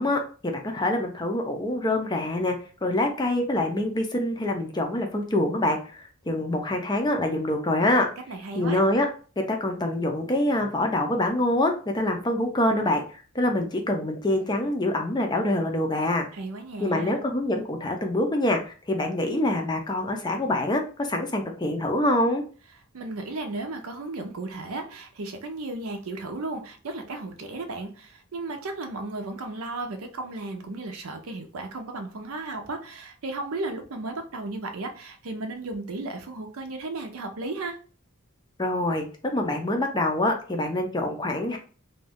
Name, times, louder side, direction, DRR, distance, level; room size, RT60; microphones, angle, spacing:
voice 1, 0.0-8.1 8.5-9.1 9.4-13.0 13.3-16.3 16.8-22.4 38.6-41.6, left 1 dB, 20° left, 4 dB, 0.4 m, -25 dB
voice 2, 8.3-8.8 16.3-17.1 22.9-37.8, right 2 dB, 85° right, 5 dB, 0.6 m, -34 dB
2.5 x 2.2 x 3.4 m, 0.39 s
head